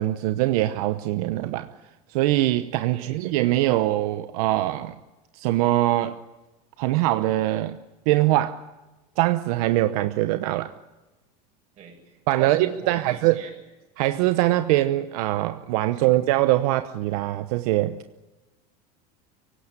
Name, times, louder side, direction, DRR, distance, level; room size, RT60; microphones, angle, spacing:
voice 1, 0.0-1.7 2.1-4.9 5.3-6.2 6.8-7.8 8.1-8.6 9.2-10.7 12.3-13.4 14.0-18.0, right 16 dB, 75° right, 0.9 m, -22 dB
voice 2, 2.9-3.2 11.8-13.5 15.9-16.1, right 7 dB, 35° right, 7.5 m, -41 dB
25.0 x 17.5 x 9.8 m
supercardioid pair, 150°, 19 cm